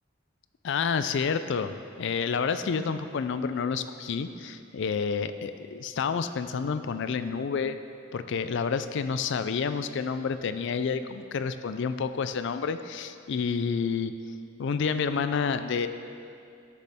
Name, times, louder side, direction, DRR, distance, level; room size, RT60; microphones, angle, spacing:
voice 1, 0.6-7.8 8.1-14.1 14.6-15.9, left 5 dB, 60° left, 11 dB, 0.4 m, -29 dB
11.5 x 6.7 x 3.6 m, 2.5 s
head